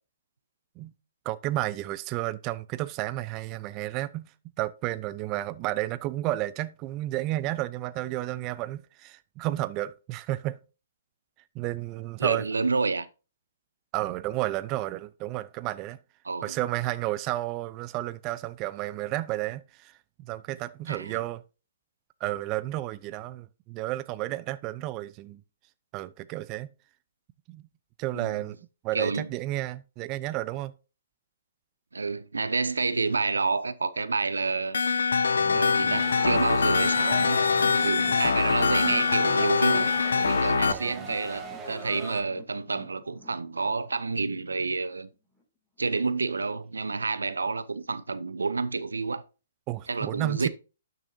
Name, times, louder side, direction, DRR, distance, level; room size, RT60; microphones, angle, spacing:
voice 1, 1.3-4.3 4.6-10.6 11.5-12.4 13.9-16.0 16.4-19.9 20.2-21.4 22.2-25.4 25.9-26.7 27.5-27.6 28.0-28.6 28.8-30.7 40.7-41.1 49.7-50.5, right 16 dB, 30° right, 0.5 m, -32 dB
voice 2, 12.2-13.1 16.2-16.6 20.9-21.2 28.1-28.4 28.9-29.3 31.9-34.8 35.5-37.5 37.8-39.9 40.2-45.1 45.8-49.2 49.9-50.5, right 4 dB, 90° right, 0.7 m, -29 dB
sound 1, 34.7-40.7, left 5 dB, 80° left, 0.5 m, -23 dB
sound 2, 35.3-44.6 44.9-45.0 45.4-45.5, equal, ahead, 4.1 m, -47 dB
sound 3, 35.9-42.2, right 3 dB, 15° right, 2.0 m, -40 dB
12.0 x 6.7 x 2.7 m
hypercardioid pair, 135°, 0 cm